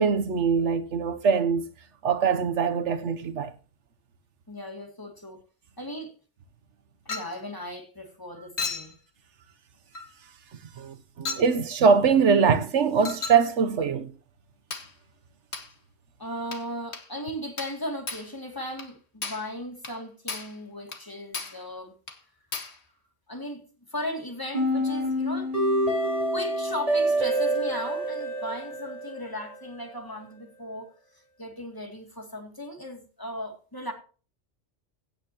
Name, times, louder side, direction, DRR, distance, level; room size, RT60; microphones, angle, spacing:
voice 1, 0.0-1.7 2.0-3.5 10.8-14.1, right 6 dB, 75° right, 1.2 m, -23 dB
voice 2, 4.5-5.4 5.8-6.1 7.1-9.0 16.2-21.9 23.3-23.6 23.9-25.5 26.3-30.9 31.4-33.9, equal, 15° left, 2.6 m, -37 dB
Chink clink, 7.1-7.4 8.6-8.9 9.9-10.1 11.3-11.5 13.0-13.5 14.7-14.9 15.5-15.7 16.5-16.7 16.9-17.1 17.6-17.8 18.1-18.3 18.8-18.9 19.2-19.5 19.8-20.0 20.3-20.6 20.9-21.1 21.3-21.6 22.1-22.2 22.5-22.8, left 4 dB, 65° left, 1.9 m, -35 dB
sound 1, 24.5-29.6, right 1 dB, 30° right, 4.7 m, -27 dB
17.0 x 8.9 x 2.9 m
omnidirectional pair, 1.2 m